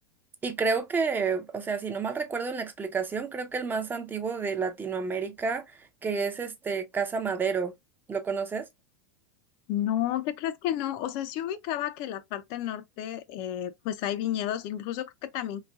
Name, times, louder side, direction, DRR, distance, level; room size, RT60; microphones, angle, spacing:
voice 1, 0.4-5.6 6.0-7.7 8.1-8.7, right 5 dB, 20° right, 0.5 m, -30 dB
voice 2, 9.7-15.6, left 11 dB, 50° left, 0.4 m, -31 dB
3.0 x 2.2 x 2.3 m
hypercardioid pair, 105°, 11 cm